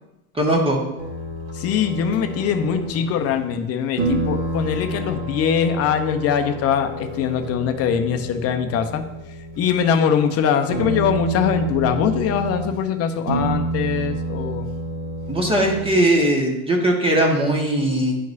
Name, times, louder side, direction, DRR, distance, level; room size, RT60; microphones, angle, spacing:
voice 1, 0.4-0.8 15.3-18.2, right 1 dB, 10° right, 0 dB, 1.6 m, -19 dB
sound 1, 1.0-3.6 4.0-9.8 10.1-10.3 10.6-12.8 13.3-16.2, right 1 dB, 35° right, 2.3 m, -29 dB
voice 2, 1.5-9.0 9.6-14.7, left 7 dB, 35° left, 7 dB, 0.7 m, -22 dB
11.0 x 4.6 x 2.7 m, 0.94 s
hypercardioid pair, 85°, 44 cm